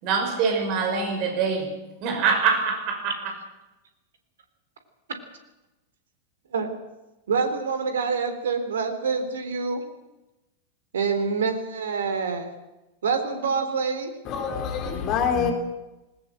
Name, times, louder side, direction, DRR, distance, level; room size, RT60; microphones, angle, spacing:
voice 1, 0.0-1.7 2.0-3.2, right 5 dB, 40° right, 6.0 m, -24 dB
voice 2, 7.3-9.8 10.9-12.5 13.0-14.1, right 5 dB, 65° right, 3.7 m, -26 dB
voice 3, 14.3-15.5, left 7 dB, 35° left, 3.9 m, -25 dB
20.0 x 19.5 x 7.6 m
figure-of-eight pair, 90°, 0 cm